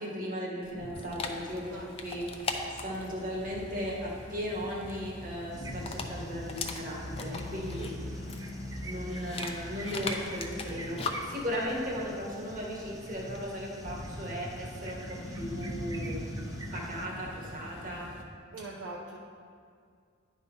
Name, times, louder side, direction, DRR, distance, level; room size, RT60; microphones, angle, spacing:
voice 1, 0.0-2.2 2.8-7.9 8.8-16.2 16.7-18.1, equal, 45° right, -3 dB, 1.7 m, -36 dB
Dog, 0.6-13.5, left 3 dB, 30° left, 0.6 m, -41 dB
sound 1, 1.2-18.2, left 1 dB, 65° left, 0.9 m, -42 dB
sound 2, 5.5-17.1, right 2 dB, 20° right, 0.4 m, -49 dB
voice 2, 7.8-8.2 18.5-19.2, right 2 dB, 75° right, -2 dB, 0.7 m, -42 dB
10.0 x 4.1 x 5.5 m, 2.2 s
head